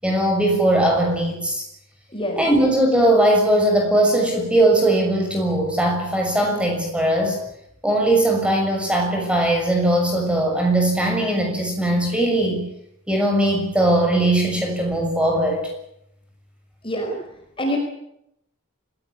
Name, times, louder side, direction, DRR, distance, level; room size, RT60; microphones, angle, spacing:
voice 1, 0.0-1.6 2.4-7.4 7.8-12.6 13.1-15.7, right 1 dB, 5° right, 1 dB, 6.5 m, -19 dB
voice 2, 2.1-2.4 16.8-17.1 17.6-17.8, equal, 25° left, 2 dB, 5.0 m, -25 dB
25.5 x 17.0 x 9.9 m, 0.79 s
head